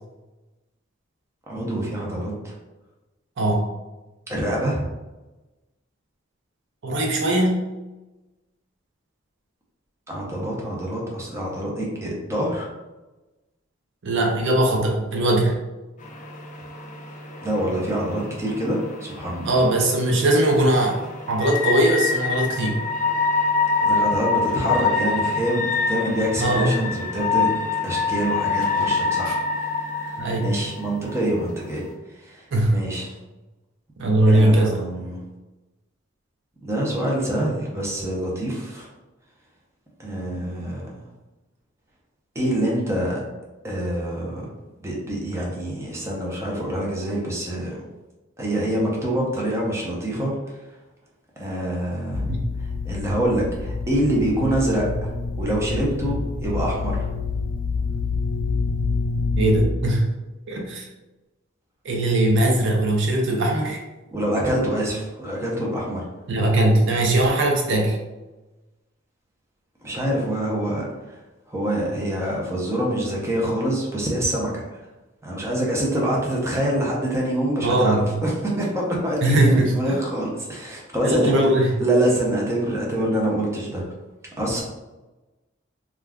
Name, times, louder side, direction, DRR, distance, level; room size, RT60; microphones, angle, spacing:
voice 1, 1.5-2.5 4.3-4.9 10.1-12.7 17.4-19.6 23.8-27.5 27.8-31.8 32.1-32.5 32.7-33.1 34.2-35.2 36.6-38.9 40.0-41.0 42.3-43.2 43.6-44.4 44.8-47.7 48.4-50.3 51.4-52.3 52.8-57.0 64.1-66.0 69.8-71.2 71.5-74.8 75.2-83.8 84.4-84.6, right 1 dB, 15° right, -3 dB, 0.6 m, -25 dB
voice 2, 3.4-3.7 6.8-7.6 14.0-15.6 19.4-22.8 26.4-26.7 29.3-29.4 30.2-30.5 32.5-32.8 34.0-35.0 52.3-52.4 59.3-60.1 60.5-60.9 61.8-63.8 66.3-68.0 77.6-78.2 79.2-80.0 81.0-81.7, right 1 dB, 65° right, 1 dB, 0.5 m, -20 dB
sound 1, 16.0-31.9, left 4 dB, 40° left, 0.4 m, -26 dB
sound 2, 52.1-59.7, left 3 dB, 65° left, 0.8 m, -27 dB
2.4 x 2.3 x 3.4 m, 1.1 s
head